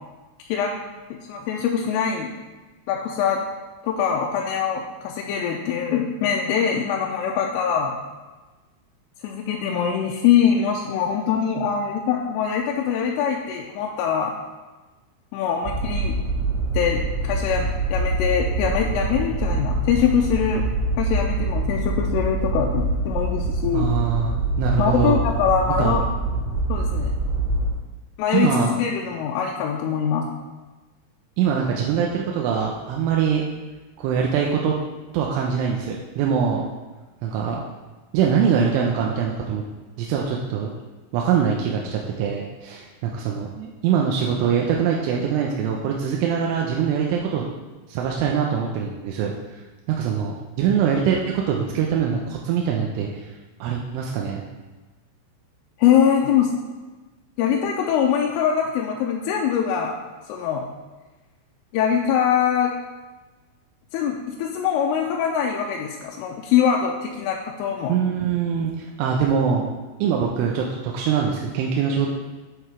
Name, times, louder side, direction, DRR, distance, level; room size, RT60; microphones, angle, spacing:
voice 1, 1.3-2.3 2.9-3.4 3.8-8.0 9.2-14.4 15.3-16.1 16.7-20.7 21.0-23.9 24.8-26.0 26.7-27.1 28.2-30.3 55.8-56.5 57.4-60.0 60.3-60.7 61.7-62.7 63.9-68.0, left 8 dB, 85° left, -1 dB, 3.2 m, -23 dB
sound 1, 15.6-27.7, right 2 dB, 60° right, 3.1 m, -25 dB
voice 2, 23.7-25.2 25.8-26.0 28.3-28.7 31.4-33.4 34.0-34.8 35.1-36.6 37.2-37.6 38.1-39.6 40.0-40.7 41.1-47.5 47.9-49.3 49.9-53.3 53.6-54.4 67.9-69.7 70.0-72.1, right 7 dB, 80° right, -1 dB, 3.1 m, -23 dB
8.1 x 8.0 x 4.5 m, 1.2 s
omnidirectional pair, 6.0 m